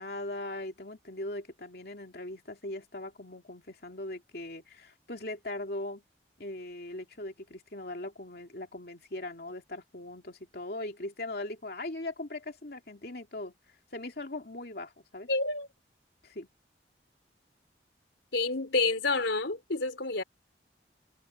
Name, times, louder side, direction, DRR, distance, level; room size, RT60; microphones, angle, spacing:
voice 1, 0.0-6.0 6.4-13.5 13.9-15.3 16.2-16.5, left 2 dB, 60° left, 2.6 m, -40 dB
voice 2, 15.3-15.7 18.3-20.2, left 3 dB, 85° left, 3.9 m, -28 dB
head